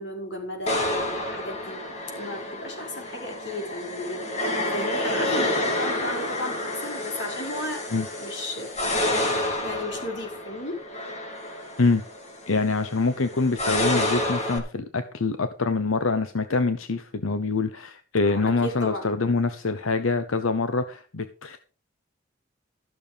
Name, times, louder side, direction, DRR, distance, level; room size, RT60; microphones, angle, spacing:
voice 1, 0.0-1.9 2.1-8.7 9.6-10.8 18.3-19.1, left 1 dB, 60° left, 1 dB, 5.4 m, -35 dB
sound 1, 0.7-14.6, left 1 dB, 35° left, 3.1 m, -29 dB
voice 2, 12.5-21.6, left 3 dB, 90° left, 10 dB, 0.9 m, -25 dB
14.0 x 7.0 x 5.2 m, 0.38 s
head